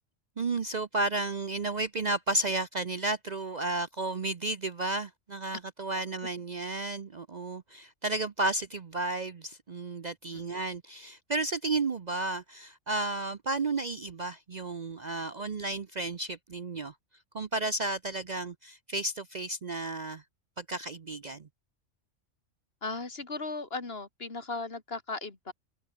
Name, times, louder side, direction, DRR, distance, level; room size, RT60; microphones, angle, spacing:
voice 1, 0.4-16.9 17.3-20.2 20.6-21.5, right 2 dB, 40° right, 0.8 m, -33 dB
voice 2, 22.8-25.5, left 3 dB, 50° left, 2.7 m, -37 dB
omnidirectional pair, 1.3 m